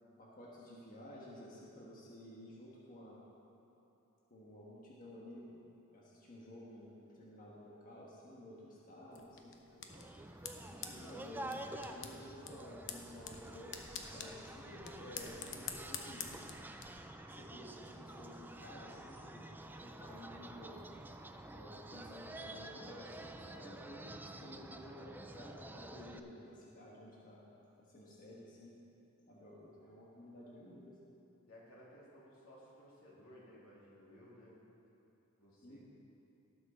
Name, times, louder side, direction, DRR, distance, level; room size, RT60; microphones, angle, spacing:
voice 1, 0.2-3.2 4.3-5.6 5.9-9.6 10.6-16.3 17.2-19.5 19.8-20.8 21.5-27.5 27.8-28.8 29.3-31.0 35.6-35.8, left 1 dB, 45° left, -5 dB, 1.5 m, -53 dB
voice 2, 8.4-9.2 9.7-10.2 10.9-11.1 11.7-11.8 31.5-34.6 35.4-35.8, equal, 90° left, -6 dB, 2.9 m, -59 dB
sound 1, 9.1-16.9, left 7 dB, 65° left, 0.9 m, -48 dB
sound 2, 9.9-26.2, right 1 dB, 10° right, 0.4 m, -49 dB
18.5 x 6.3 x 4.3 m, 2.9 s
head